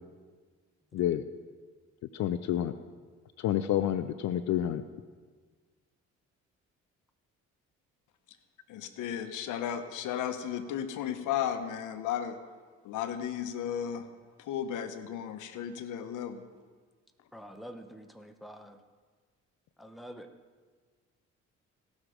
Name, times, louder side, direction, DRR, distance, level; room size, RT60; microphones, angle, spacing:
voice 1, 2.2-2.7 3.4-4.8, left 11 dB, 65° left, 11 dB, 0.5 m, -28 dB
voice 2, 8.7-12.4 12.8-14.0 14.5-16.4, left 9 dB, 90° left, 9 dB, 0.9 m, -34 dB
voice 3, 17.3-18.8 19.8-20.3, equal, ahead, 6 dB, 0.9 m, -46 dB
17.5 x 6.3 x 5.0 m, 1.5 s
cardioid pair, 90°, 30 cm